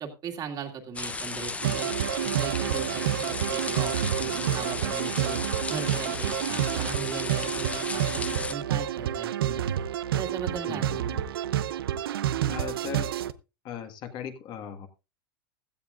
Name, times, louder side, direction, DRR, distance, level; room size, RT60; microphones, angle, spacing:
voice 1, 0.0-1.9 2.2-5.4 5.7-9.7 10.1-11.3, right 6 dB, 35° right, 3 dB, 2.2 m, -38 dB
sound 1, 1.0-8.5, left 3 dB, 10° left, 0.8 m, -34 dB
sound 2, 1.6-13.3, right 11 dB, 90° right, 0.7 m, -29 dB
voice 2, 10.6-11.0 12.5-13.1 13.6-14.9, left 8 dB, 40° left, 7 dB, 1.7 m, -38 dB
16.0 x 13.0 x 2.5 m, 0.27 s
supercardioid pair, 130°, 12 cm